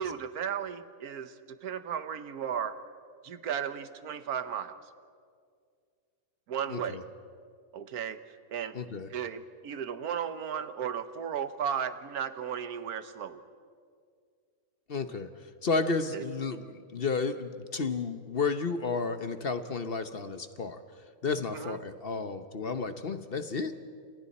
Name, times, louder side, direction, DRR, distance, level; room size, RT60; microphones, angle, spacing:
voice 1, 0.0-2.8 3.2-4.8 6.5-7.0 7.7-8.2 8.5-8.8 9.1-13.4 16.1-16.2 21.5-21.8, right 8 dB, 90° right, 11 dB, 1.5 m, -35 dB
voice 2, 6.7-7.0 8.7-9.1 14.9-15.3 15.6-20.8 21.2-23.8, left 4 dB, 45° left, 9 dB, 1.0 m, -32 dB
29.5 x 29.0 x 4.2 m, 2.2 s
omnidirectional pair, 1.5 m